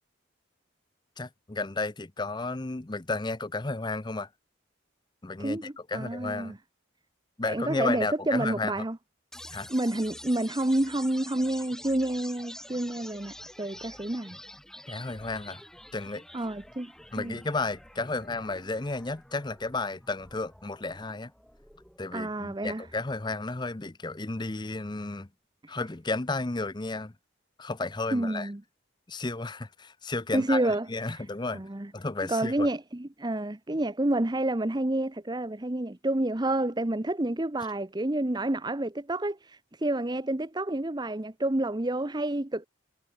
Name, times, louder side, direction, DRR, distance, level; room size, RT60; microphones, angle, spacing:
voice 1, 1.2-4.3 5.2-6.5 7.4-8.7 9.5-9.7 14.9-15.6 15.9-16.2 17.1-21.3 22.0-25.3 25.7-27.1 27.6-28.5 29.1-31.6 31.9-32.7, left 3 dB, 20° left, 0.7 m, -33 dB
voice 2, 5.4-6.6 7.4-9.0 9.7-14.4 16.3-17.4 22.1-22.8 25.6-25.8 28.1-28.6 30.3-31.2 31.5-31.9 32.3-42.7, right 1 dB, 20° right, 0.8 m, -29 dB
sound 1, 9.3-23.3, left 1 dB, 5° left, 3.5 m, -48 dB
head